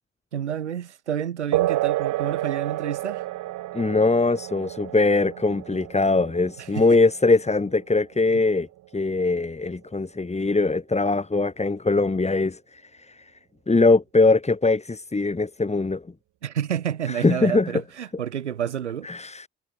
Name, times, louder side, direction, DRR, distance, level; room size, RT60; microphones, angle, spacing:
voice 1, 0.3-3.2 6.6-7.0 16.4-19.1, right 9 dB, 85° right, 7.5 m, -29 dB
sound 1, 1.5-9.5, right 16 dB, 65° right, 3.2 m, -31 dB
voice 2, 3.7-8.7 8.9-12.8 13.1-13.2 13.7-16.0 17.1-17.7 19.0-19.5, left 3 dB, 20° left, 3.2 m, -21 dB
figure-of-eight pair, 45°, 34 cm